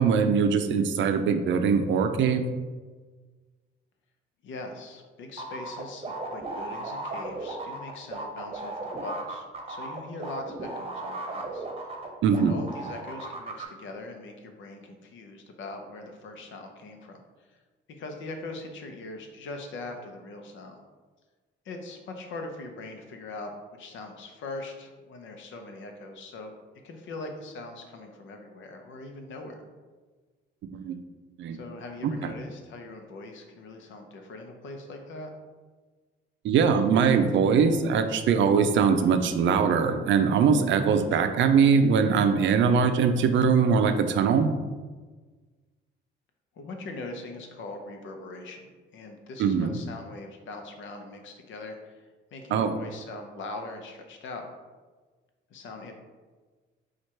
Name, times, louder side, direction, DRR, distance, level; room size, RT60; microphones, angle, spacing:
voice 1, 0.0-2.4 12.2-12.6 30.7-31.0 31.4-31.6 32.2-32.3 36.4-44.5 49.4-49.8 52.5-52.7, right 6 dB, 70° right, 8 dB, 0.5 m, -22 dB
voice 2, 4.4-11.9 12.3-17.2 17.5-17.6 17.9-20.8 21.6-26.5 26.8-29.6 31.5-35.3 46.5-54.5 55.5-55.9, left 2 dB, 75° left, 4 dB, 0.7 m, -41 dB
sound 1, 5.4-12.4 12.7-13.6, right 2 dB, 30° right, 0.9 m, -36 dB
4.5 x 2.4 x 4.4 m, 1.4 s
cardioid pair, 90°, 20 cm